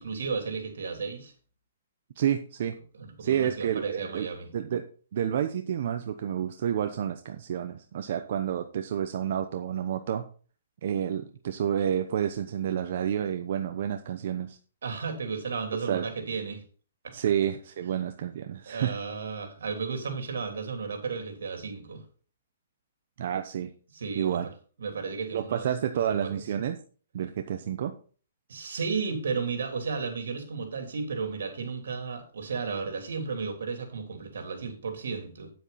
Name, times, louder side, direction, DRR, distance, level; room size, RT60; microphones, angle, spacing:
voice 1, 0.0-1.3 2.9-4.5 14.8-16.6 17.0-17.1 18.6-22.0 23.9-24.4 24.8-25.6 26.1-26.3 28.5-35.5, right 5 dB, 85° right, 4 dB, 3.3 m, -34 dB
voice 2, 2.2-2.8 3.2-4.3 4.5-4.9 5.1-10.2 10.8-14.6 15.7-16.1 17.1-19.0 23.2-23.7 24.1-24.5 25.3-26.8 27.1-28.0, right 9 dB, 50° right, 6 dB, 0.8 m, -29 dB
9.3 x 7.9 x 4.2 m, 0.40 s
hypercardioid pair, 165°, 0 cm